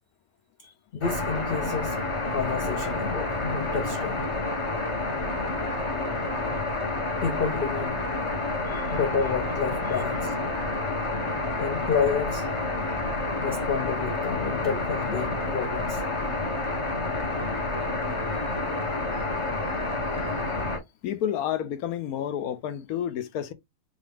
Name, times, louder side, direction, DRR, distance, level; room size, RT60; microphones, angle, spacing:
voice 1, 0.9-2.0 2.3-4.3 7.2-8.0 8.9-10.4 11.6-12.5 13.4-16.0, left 6 dB, 90° left, 0.5 m, -29 dB
sound 1, 1.0-20.8, left 2 dB, 30° left, 0.6 m, -29 dB
voice 2, 21.0-23.5, left 10 dB, 70° left, 1.0 m, -30 dB
4.1 x 2.4 x 3.3 m
omnidirectional pair, 1.7 m